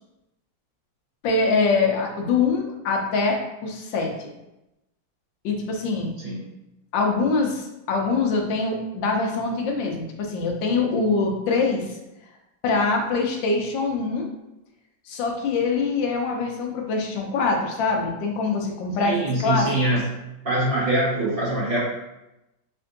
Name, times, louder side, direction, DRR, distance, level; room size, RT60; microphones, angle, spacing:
voice 1, 1.2-4.3 5.4-6.1 6.9-12.0 12.6-14.3 15.1-19.7, left 4 dB, 80° left, 1 dB, 1.4 m, -24 dB
voice 2, 19.0-20.1 20.4-21.8, right 1 dB, 35° right, -6 dB, 1.0 m, -23 dB
5.3 x 2.5 x 2.5 m, 0.93 s
omnidirectional pair, 2.0 m